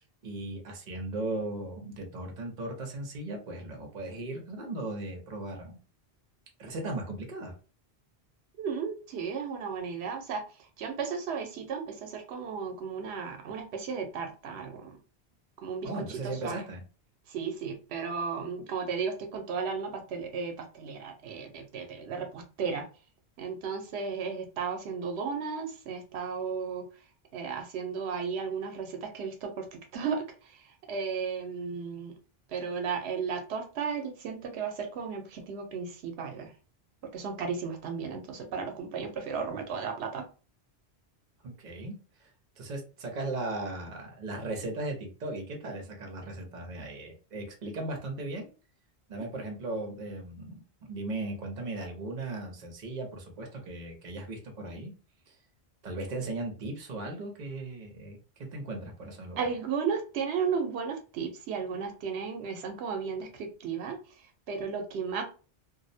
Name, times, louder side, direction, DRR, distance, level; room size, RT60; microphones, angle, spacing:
voice 1, 0.2-5.8 6.6-7.5 15.8-16.8 41.4-42.3 42.6-48.5 49.1-54.9 55.3-55.4 55.8-59.5, right 2 dB, 50° right, 2 dB, 0.8 m, -37 dB
voice 2, 8.6-10.4 10.8-14.9 15.6-16.6 17.3-22.8 23.4-26.8 27.3-29.7 29.9-30.6 30.9-32.1 32.5-36.5 37.1-40.2 59.4-64.0 64.5-65.2, right 5 dB, 85° right, 4 dB, 0.9 m, -34 dB
2.5 x 2.0 x 2.6 m, 0.36 s
omnidirectional pair, 1.1 m